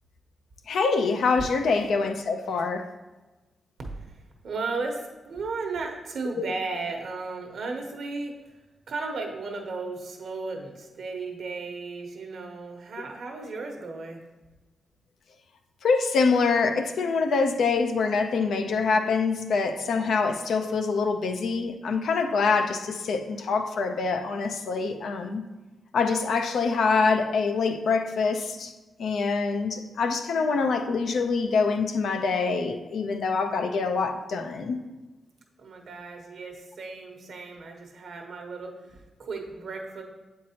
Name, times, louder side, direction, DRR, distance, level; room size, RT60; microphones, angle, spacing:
voice 1, 0.7-2.9 15.8-25.4 25.9-28.7 29.0-34.8, left 4 dB, 80° left, 6 dB, 0.5 m, -25 dB
voice 2, 3.9-8.6 8.9-14.2 35.6-40.0, right 3 dB, 75° right, 2 dB, 1.0 m, -35 dB
7.3 x 4.6 x 2.8 m, 1.2 s
cardioid pair, 65°, 0 cm